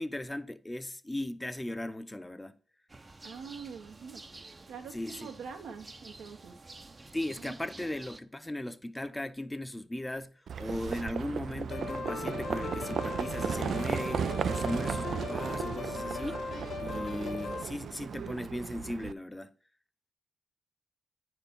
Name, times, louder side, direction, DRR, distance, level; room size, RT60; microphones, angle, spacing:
voice 1, 0.0-2.6 4.9-5.3 7.1-16.5 16.8-19.5, left 1 dB, 10° left, 0.7 m, -37 dB
sound 1, 2.9-8.2, right 3 dB, 30° right, 0.6 m, -50 dB
voice 2, 3.2-4.2 4.7-6.5 7.3-7.9, right 6 dB, 90° right, 1.3 m, -45 dB
Livestock farm animals working animals, 10.5-19.1, right 7 dB, 65° right, 0.3 m, -35 dB
sound 2, 11.7-17.6, left 5 dB, 80° left, 1.5 m, -38 dB
9.6 x 4.5 x 5.3 m
cardioid pair, 80°, 0 cm